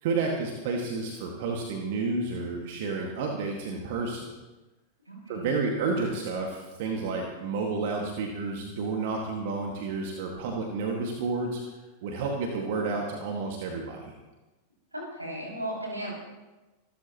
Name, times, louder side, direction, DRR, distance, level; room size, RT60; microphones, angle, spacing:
voice 1, 0.0-4.3 5.3-11.6 12.0-14.1, right 4 dB, 50° right, 1 dB, 2.1 m, -30 dB
voice 2, 5.1-5.5 14.9-16.1, right 1 dB, 85° right, -3 dB, 6.5 m, -36 dB
26.0 x 13.5 x 3.1 m, 1.1 s
figure-of-eight pair, 90°, 0 cm